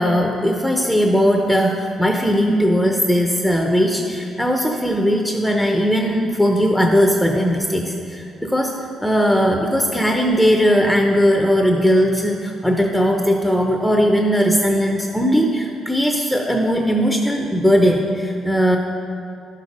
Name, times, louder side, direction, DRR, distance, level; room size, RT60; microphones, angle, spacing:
voice 1, 0.0-18.8, equal, ahead, 2 dB, 0.7 m, -18 dB
11.5 x 6.5 x 5.3 m, 2.5 s
cardioid pair, 90°, 0 cm